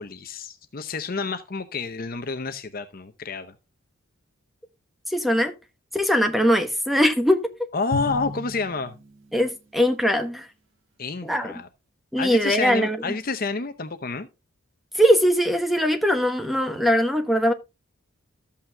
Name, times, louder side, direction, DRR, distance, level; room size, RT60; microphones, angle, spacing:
voice 1, 0.0-3.5 7.7-8.9 11.0-11.7 12.2-14.3, left 4 dB, 40° left, 0.7 m, -29 dB
voice 2, 5.1-5.5 5.9-7.7 9.3-10.5 11.2-11.5 12.1-13.0 14.9-17.5, equal, ahead, 1.0 m, -21 dB
Drum, 7.9-9.7, left 2 dB, 65° right, 2.6 m, -34 dB
13.5 x 8.5 x 2.3 m
head